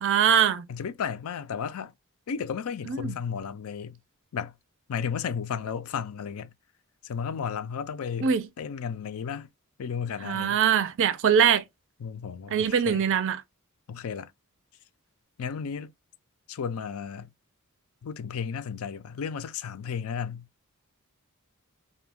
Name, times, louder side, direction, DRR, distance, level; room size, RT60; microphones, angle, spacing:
voice 1, 0.0-0.6 2.9-3.1 8.2-8.5 10.2-11.6 12.5-13.4, right 8 dB, 60° right, 0.5 m, -22 dB
voice 2, 0.7-1.9 2.3-4.0 4.3-4.5 4.9-6.5 7.0-9.5 9.8-10.6 12.0-13.1 13.9-14.3 15.4-15.9 16.5-17.3 18.0-20.4, left 6 dB, 75° left, 0.4 m, -33 dB
2.7 x 2.2 x 3.4 m
head